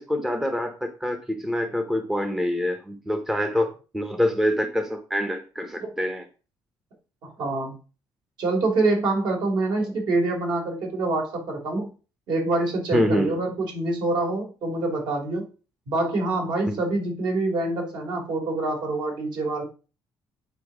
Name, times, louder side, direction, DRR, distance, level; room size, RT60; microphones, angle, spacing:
voice 1, 0.0-6.2 12.9-13.4 16.7-16.8, equal, 5° right, 7 dB, 0.7 m, -26 dB
voice 2, 7.2-7.8 8.4-11.9 12.3-15.4 15.9-19.6, right 2 dB, 65° right, 1 dB, 3.2 m, -26 dB
9.0 x 4.3 x 4.9 m, 0.34 s
cardioid pair, 170°, 8 cm